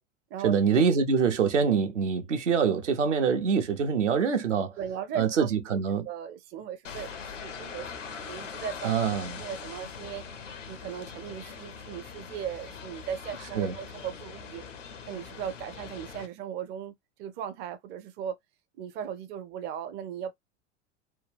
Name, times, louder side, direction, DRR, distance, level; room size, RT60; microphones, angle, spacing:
voice 1, 0.4-4.8 5.2-6.1 8.8-9.4 13.6-13.7, right 6 dB, 75° right, 0.9 m, -25 dB
voice 2, 4.8-5.8 6.0-8.9 9.4-10.2 10.7-14.6 15.1-18.4 18.8-20.3, right 9 dB, 30° right, 0.5 m, -37 dB
sound 1, 6.8-16.3, left 6 dB, 80° left, 0.8 m, -42 dB
3.2 x 2.3 x 3.4 m
figure-of-eight pair, 85°, 37 cm